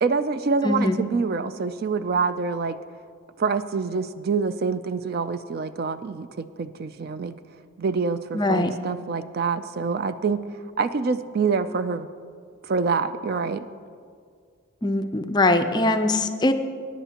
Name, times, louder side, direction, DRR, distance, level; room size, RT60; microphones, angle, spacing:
voice 1, 0.0-2.8 3.4-7.3 7.8-10.4 10.8-12.1 12.6-13.6, right 4 dB, 45° right, 11 dB, 0.4 m, -26 dB
voice 2, 0.6-1.0 8.3-8.7 14.8-16.5, left 2 dB, 20° left, 8 dB, 0.5 m, -22 dB
21.5 x 10.0 x 2.9 m, 2.2 s
head